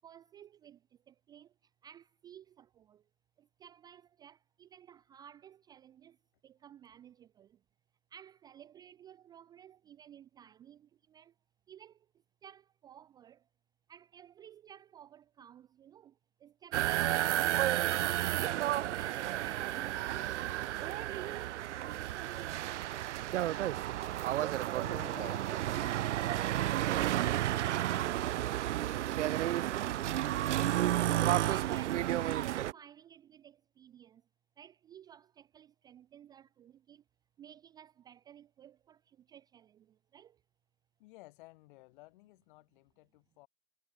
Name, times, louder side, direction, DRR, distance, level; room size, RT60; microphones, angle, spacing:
voice 1, 0.0-3.1 3.4-6.2 6.4-7.6 8.1-11.3 11.7-13.5 13.9-20.6 20.9-22.2 31.5-34.3 34.6-37.0 37.4-40.4, right 9 dB, 10° right, 0.6 m, -56 dB
sound 1, 16.7-32.7, right 13 dB, 80° right, 0.7 m, -32 dB
voice 2, 24.8-26.0 29.9-31.5 41.0-43.5, left 21 dB, 45° left, 6.4 m, -56 dB
hypercardioid pair, 150°, 35 cm